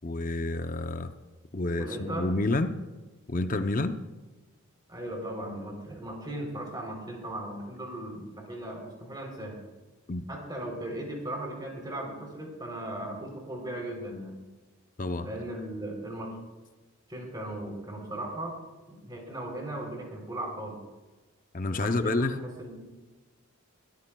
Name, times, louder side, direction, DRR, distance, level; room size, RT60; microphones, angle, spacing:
voice 1, 0.0-1.1 1.5-2.7 3.3-3.9 10.1-10.2 15.0-15.3 21.5-22.4, left 2 dB, 40° left, 8 dB, 0.6 m, -29 dB
voice 2, 1.8-2.3 4.9-9.6 10.3-14.3 15.2-16.3 17.1-18.6 18.9-20.8 21.7-22.7, right 1 dB, 20° right, 0 dB, 3.4 m, -37 dB
21.0 x 13.0 x 2.3 m, 1.2 s
head